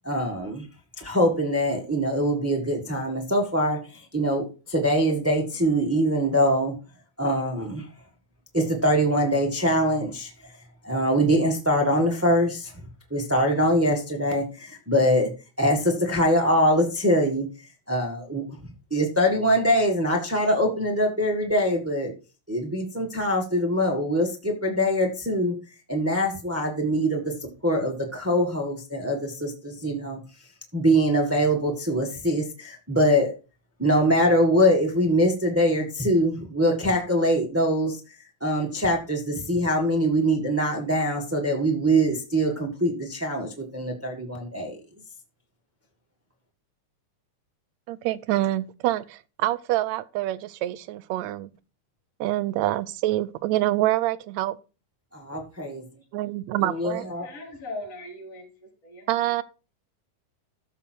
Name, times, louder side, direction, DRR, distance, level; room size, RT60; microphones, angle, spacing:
voice 1, 0.0-0.6 1.0-6.7 7.2-7.9 8.5-10.5 10.8-12.7 13.1-17.5 17.9-22.1 22.5-25.5 25.9-30.2 30.7-33.3 33.8-38.0 38.4-44.8 55.1-55.8 56.6-57.3, equal, 15° right, 0.5 m, -23 dB
voice 2, 47.9-51.5 52.2-54.6 56.1-57.1 59.1-59.4, right 15 dB, 80° right, 1.7 m, -26 dB
voice 3, 56.9-59.3, left 2 dB, 55° left, 5.0 m, -40 dB
14.0 x 5.6 x 4.5 m
omnidirectional pair, 3.5 m